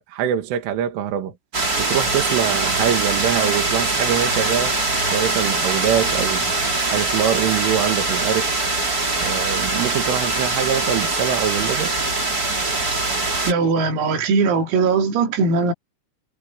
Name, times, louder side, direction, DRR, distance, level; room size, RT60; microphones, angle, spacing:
voice 1, 0.1-1.3 1.8-4.8 5.1-6.5 6.9-8.5 9.2-11.9, right 10 dB, 75° right, 4.4 m, -23 dB
sound 1, 1.5-13.5, right 3 dB, 20° right, 3.7 m, -22 dB
voice 2, 13.5-15.7, right 4 dB, 90° right, 6.0 m, -19 dB
omnidirectional pair, 5.9 m